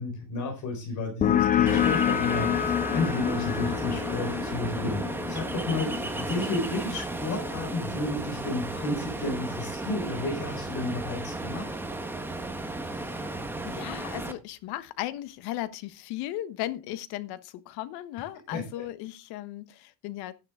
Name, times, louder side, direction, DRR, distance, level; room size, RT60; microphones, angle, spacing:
voice 1, 0.0-11.7 18.5-18.8, left 2 dB, 45° left, 4.3 m, -32 dB
sound 1, 1.2-8.5, left 10 dB, 20° left, 0.5 m, -28 dB
Ocean, 1.7-14.3, right 2 dB, 5° right, 1.2 m, -34 dB
voice 2, 12.9-13.3 13.6-20.3, left 14 dB, 65° left, 1.3 m, -36 dB
11.5 x 10.5 x 3.6 m
cardioid pair, 150°, 41 cm